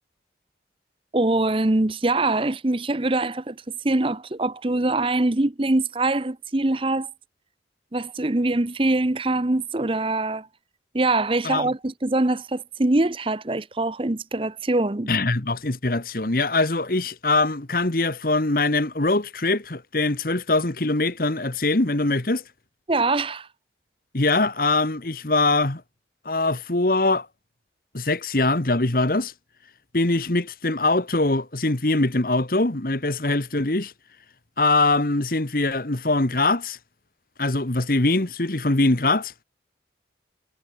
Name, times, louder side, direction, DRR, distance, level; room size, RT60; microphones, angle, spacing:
voice 1, 1.1-3.6 3.8-7.1 7.9-10.5 10.9-15.1 22.9-23.5, right 2 dB, 30° right, 0.8 m, -23 dB
voice 2, 15.1-22.4 24.1-25.8 26.2-27.3 27.9-29.3 29.9-33.9 34.6-36.8 37.4-39.3, left 2 dB, 50° left, 1.5 m, -22 dB
head